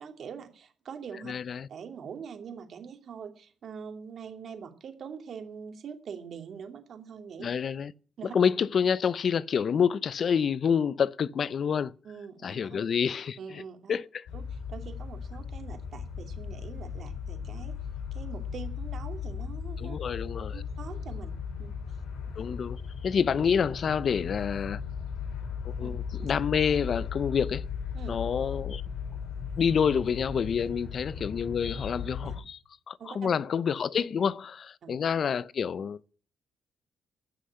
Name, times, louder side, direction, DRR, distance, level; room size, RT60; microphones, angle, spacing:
voice 1, 0.0-1.3 1.7-7.5 8.2-8.3 12.0-12.8 13.4-14.0 14.3-17.7 18.1-20.0 20.5-21.7 25.8-25.9 26.2-26.3 27.9-28.1 32.2-32.4 33.0-33.3 34.8-34.9, right 7 dB, 60° right, 2.6 m, -43 dB
voice 2, 1.2-1.7 7.4-7.9 8.3-11.9 12.4-13.6 13.9-14.3 19.8-20.6 22.4-24.8 25.8-27.7 28.1-28.8 29.6-32.6 32.9-36.0, left 7 dB, 50° left, 0.5 m, -28 dB
sound 1, 14.3-32.4, left 6 dB, 85° left, 3.2 m, -37 dB
15.5 x 6.4 x 9.8 m
cardioid pair, 90°, 0 cm